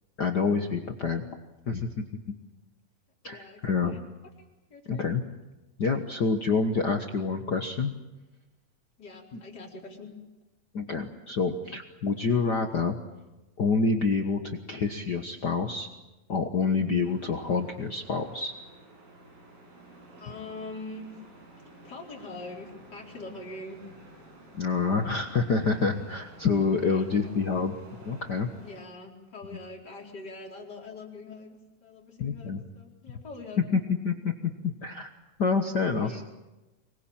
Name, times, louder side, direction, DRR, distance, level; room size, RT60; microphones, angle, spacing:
voice 1, 0.2-1.2 1.7-2.0 3.2-3.9 4.9-5.2 5.8-7.9 9.3-9.4 10.7-13.0 13.6-15.9 16.3-18.5 24.5-27.8 28.0-28.5 32.2-32.6 33.6-35.1 35.4-36.2, left 4 dB, 90° left, 4 dB, 0.9 m, -27 dB
voice 2, 3.3-4.0 4.7-5.1 9.0-10.1 20.2-21.1 21.6-23.8 26.8-27.1 28.6-31.6 31.8-33.6 35.9-36.3, left 2 dB, 30° left, -1 dB, 4.6 m, -43 dB
sound 1, 17.0-28.8, right 1 dB, 75° right, 8.3 m, -52 dB
25.0 x 21.0 x 8.8 m, 1.0 s
omnidirectional pair, 4.1 m